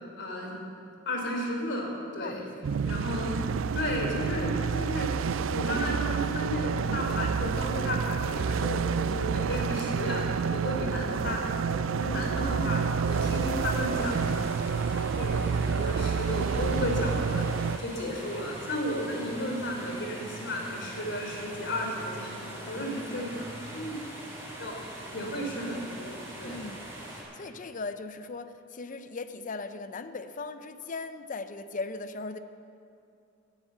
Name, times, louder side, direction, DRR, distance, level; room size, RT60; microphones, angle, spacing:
voice 1, 0.2-0.6 1.0-2.5 2.8-3.4 3.7-5.1 5.5-14.2 15.0-17.4 17.8-22.4 22.7-24.0 24.6-26.6, equal, 65° left, 0 dB, 3.3 m, -33 dB
voice 2, 2.2-2.9 12.3-12.6 22.4-23.3 26.4-26.8 27.2-32.4, left 3 dB, 40° left, 10 dB, 0.6 m, -39 dB
sound 1, 2.6-17.8, right 5 dB, 90° right, 0.4 m, -29 dB
sound 2, 13.0-27.2, right 1 dB, 15° right, 4.1 m, -43 dB
sound 3, 18.0-23.5, right 1 dB, 65° right, 1.9 m, -48 dB
16.0 x 8.4 x 8.0 m, 2.6 s
head